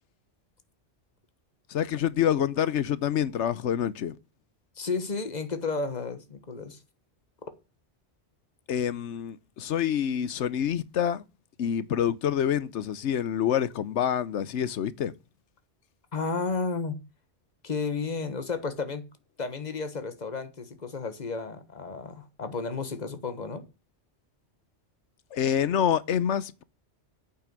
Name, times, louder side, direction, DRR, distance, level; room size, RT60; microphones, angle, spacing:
voice 1, 1.7-4.2 8.7-11.2 11.6-15.1 25.3-26.6, left 9 dB, 85° left, 1.1 m, -27 dB
voice 2, 4.8-6.8 7.4-7.5 16.1-17.0 17.6-19.1 19.4-23.7, left 4 dB, 40° left, 1.5 m, -32 dB
8.7 x 5.9 x 7.6 m
omnidirectional pair, 1.2 m